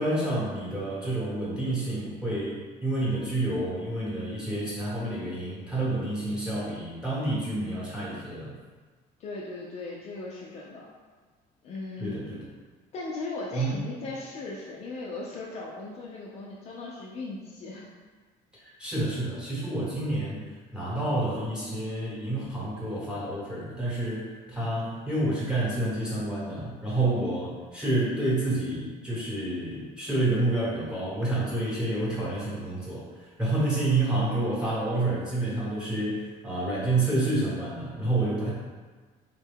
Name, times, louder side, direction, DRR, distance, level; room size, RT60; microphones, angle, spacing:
voice 1, 0.0-8.5 12.0-12.4 13.5-13.8 18.6-38.5, right 2 dB, 5° right, -8 dB, 1.0 m, -29 dB
voice 2, 9.2-10.9 11.6-12.2 12.9-17.9 27.1-27.4, left 3 dB, 40° left, -4 dB, 0.4 m, -37 dB
3.6 x 2.2 x 3.4 m, 1.4 s
cardioid pair, 155°, 17 cm